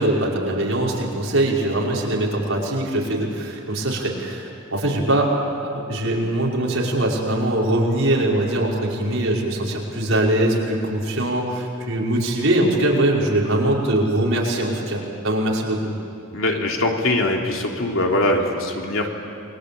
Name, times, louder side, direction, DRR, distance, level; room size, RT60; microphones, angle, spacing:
voice 1, 0.0-5.3 5.7-15.8, right 1 dB, 75° right, -3 dB, 5.4 m, -22 dB
voice 2, 16.3-19.1, left 1 dB, 80° left, 1 dB, 3.4 m, -22 dB
28.0 x 22.5 x 8.7 m, 2.5 s
head